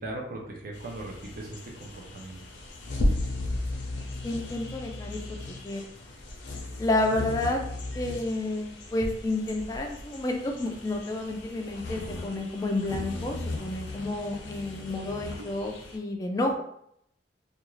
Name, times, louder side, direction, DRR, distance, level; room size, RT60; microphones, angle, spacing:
voice 1, 0.0-2.5, right 2 dB, 55° right, -1 dB, 0.5 m, -39 dB
sound 1, 0.7-16.0, left 2 dB, 85° left, 0.6 m, -36 dB
voice 2, 4.2-5.2 5.6-5.8 6.8-7.6 7.9-16.6, left 2 dB, 20° left, 2 dB, 0.3 m, -30 dB
2.5 x 2.3 x 3.0 m, 0.72 s
head